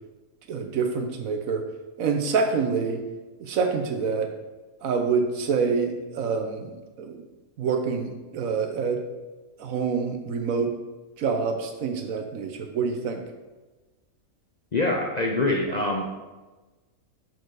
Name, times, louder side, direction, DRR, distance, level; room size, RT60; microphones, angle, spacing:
voice 1, 0.5-1.6 2.0-3.0 3.4-4.3 4.8-7.2 7.6-9.0 9.6-10.7 11.2-13.2, right 5 dB, 75° right, 5 dB, 1.2 m, -26 dB
voice 2, 14.7-16.1, left 2 dB, 45° left, -1 dB, 0.5 m, -25 dB
6.6 x 4.5 x 4.7 m, 1.2 s
omnidirectional pair, 1.5 m